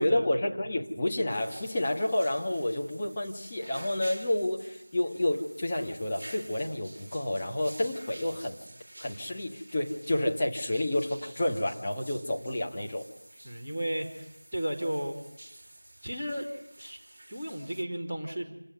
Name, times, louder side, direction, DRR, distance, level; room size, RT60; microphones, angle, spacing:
voice 1, 0.0-8.6 9.0-13.1, left 1 dB, 15° left, -2 dB, 1.8 m, -30 dB
sound 1, 1.3-17.8, right 1 dB, 35° right, 3.2 m, -50 dB
voice 2, 13.4-14.2 14.5-15.2 16.0-17.0 17.3-18.5, right 1 dB, 5° right, -14 dB, 3.2 m, -33 dB
27.5 x 19.0 x 9.4 m, 0.83 s
figure-of-eight pair, 175°, 0 cm